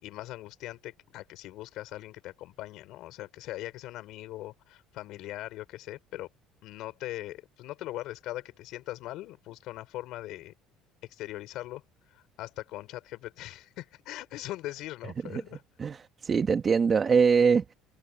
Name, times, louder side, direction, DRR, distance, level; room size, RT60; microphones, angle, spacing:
voice 1, 0.0-6.3 6.6-10.5 11.1-11.8 12.1-15.6, left 16 dB, 65° left, 4.9 m, -40 dB
voice 2, 15.8-17.7, right 5 dB, 25° right, 1.4 m, -23 dB
cardioid pair, 135°, 0 cm